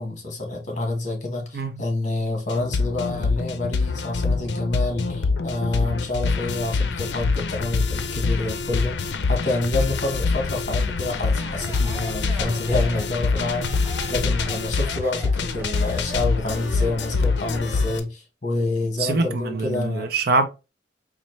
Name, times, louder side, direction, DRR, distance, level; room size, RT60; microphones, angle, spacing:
voice 1, 0.0-20.1, left 2 dB, 45° left, 1.3 m, -28 dB
sound 1, 2.5-18.0, left 4 dB, 80° left, 0.5 m, -25 dB
Speech, 11.3-18.0, right 2 dB, 15° right, 1.2 m, -40 dB
voice 2, 19.0-20.5, right 3 dB, 60° right, 0.6 m, -24 dB
4.1 x 2.5 x 3.1 m
head